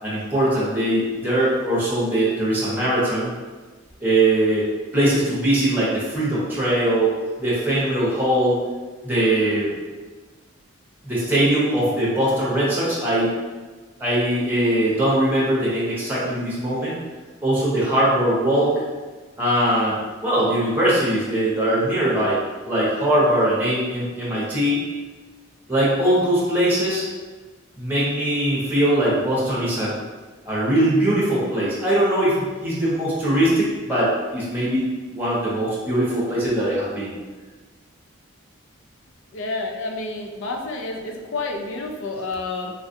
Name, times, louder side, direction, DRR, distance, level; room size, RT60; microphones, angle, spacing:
voice 1, 0.0-3.3 4.0-4.7 4.9-7.1 7.4-8.6 9.0-9.7 11.0-13.3 14.0-17.0 17.4-18.8 19.4-22.4 22.7-24.8 25.7-27.0 27.8-29.9 30.5-34.9 35.1-37.1, right 1 dB, 10° right, -8 dB, 0.9 m, -21 dB
voice 2, 39.3-42.7, left 3 dB, 70° left, 2 dB, 0.4 m, -29 dB
3.3 x 2.4 x 2.7 m, 1.4 s
head